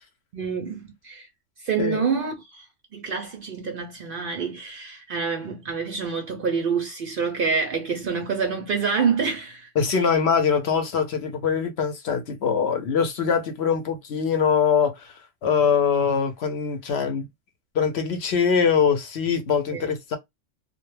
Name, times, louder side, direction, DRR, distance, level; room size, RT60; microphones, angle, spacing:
voice 1, 0.3-1.3 1.6-2.7 2.9-10.0 19.7-19.9, right 5 dB, 60° right, 0.6 m, -27 dB
voice 2, 9.8-17.3 17.7-20.2, left 6 dB, 65° left, 0.8 m, -23 dB
2.2 x 2.1 x 3.0 m
omnidirectional pair, 1.3 m